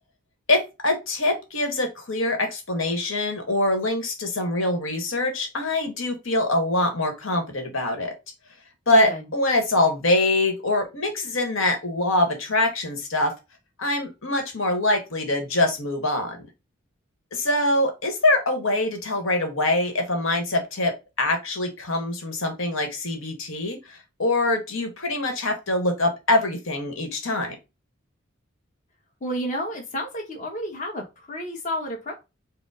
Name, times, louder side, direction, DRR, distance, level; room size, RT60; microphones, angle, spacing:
voice 1, 0.5-8.1 8.9-13.3 13.8-16.4 17.3-27.5, left 2 dB, 70° left, 5 dB, 1.3 m, -24 dB
voice 2, 29.2-32.1, equal, 35° left, 0 dB, 1.1 m, -31 dB
5.1 x 2.1 x 4.8 m, 0.25 s
head